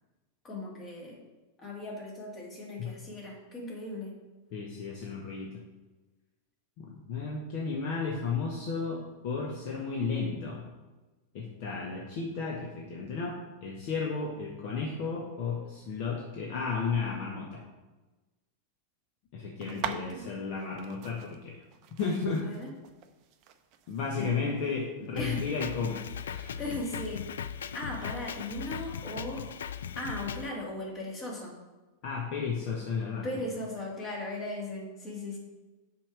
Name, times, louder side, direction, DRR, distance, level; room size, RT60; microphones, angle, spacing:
voice 1, 0.4-1.2 1.6-4.2 19.6-20.3 22.3-22.7 24.1-24.4 25.1-25.4 26.6-27.3 27.7-29.5 30.0-31.6 33.2-35.4, left 1 dB, 25° left, -2 dB, 2.4 m, -38 dB
voice 2, 4.5-5.5 6.8-10.7 11.3-17.6 19.3-21.6 22.0-22.5 23.9-26.6 32.0-33.3, left 5 dB, 45° left, -2 dB, 1.2 m, -33 dB
sound 1, 19.6-27.3, right 9 dB, 40° right, 0.6 m, -45 dB
Drum kit, 25.2-30.5, left 8 dB, 65° left, 0.3 m, -38 dB
5.9 x 5.0 x 6.1 m, 1.2 s
figure-of-eight pair, 90°, 0 cm